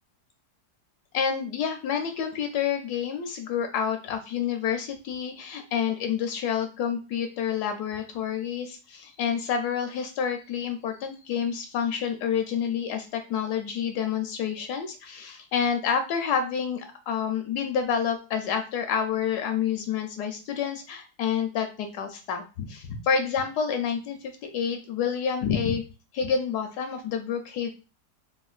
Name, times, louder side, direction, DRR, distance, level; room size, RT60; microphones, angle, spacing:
voice 1, 1.1-25.8 26.1-27.7, left 7 dB, 75° left, 6 dB, 1.1 m, -28 dB
3.7 x 2.2 x 2.4 m, 0.32 s
omnidirectional pair, 1.8 m